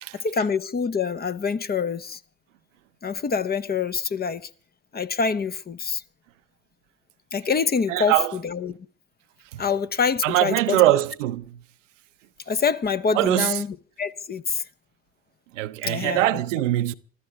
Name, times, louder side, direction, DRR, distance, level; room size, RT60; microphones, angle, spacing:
voice 1, 0.1-2.2 3.0-4.5 4.9-6.0 7.3-8.8 9.6-10.9 12.5-14.6 15.8-16.4, left 5 dB, 25° left, 0.8 m, -26 dB
voice 2, 7.9-8.3 9.5-9.6 10.2-11.6 13.1-13.6 15.5-16.9, right 15 dB, 80° right, 0.7 m, -22 dB
25.5 x 14.0 x 3.6 m
hypercardioid pair, 60°, 37 cm